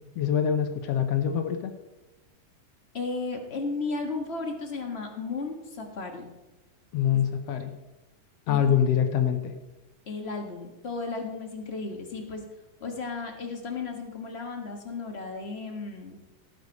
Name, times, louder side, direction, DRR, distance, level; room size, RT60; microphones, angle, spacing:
voice 1, 0.2-1.7 6.9-7.8 8.5-9.5, left 8 dB, 70° left, 7 dB, 1.7 m, -25 dB
voice 2, 2.9-6.3 7.1-7.2 8.5-8.7 10.1-12.4 12.8-16.2, left 3 dB, 30° left, 2 dB, 1.2 m, -34 dB
17.0 x 6.7 x 5.3 m, 1.0 s
omnidirectional pair, 3.5 m